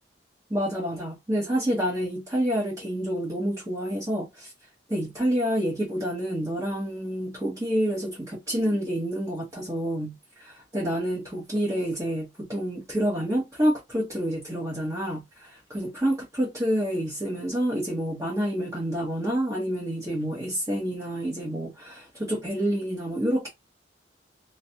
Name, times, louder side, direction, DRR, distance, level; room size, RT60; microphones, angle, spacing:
voice 1, 0.5-4.5 4.9-23.5, equal, 15° right, 1.0 m, -28 dB
3.2 x 2.3 x 2.7 m
head